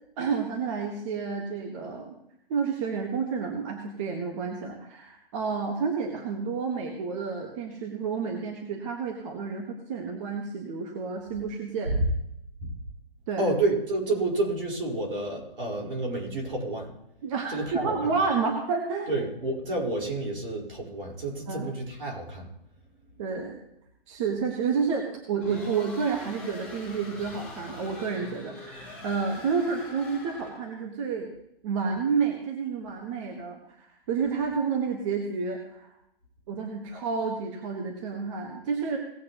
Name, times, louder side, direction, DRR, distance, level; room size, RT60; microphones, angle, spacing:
voice 1, 0.2-2.1 2.5-11.9 13.3-13.4 17.2-19.1 21.5-21.7 23.2-23.6 24.1-31.3 31.6-35.9 36.5-39.0, right 5 dB, 30° right, 2 dB, 1.4 m, -30 dB
voice 2, 13.4-16.9 17.5-18.2 19.1-22.5, right 2 dB, 65° right, -2 dB, 4.7 m, -29 dB
sound 1, 25.4-30.8, left 2 dB, 5° left, 4.7 m, -44 dB
18.0 x 8.4 x 3.0 m, 0.78 s
hypercardioid pair, 145°, 29 cm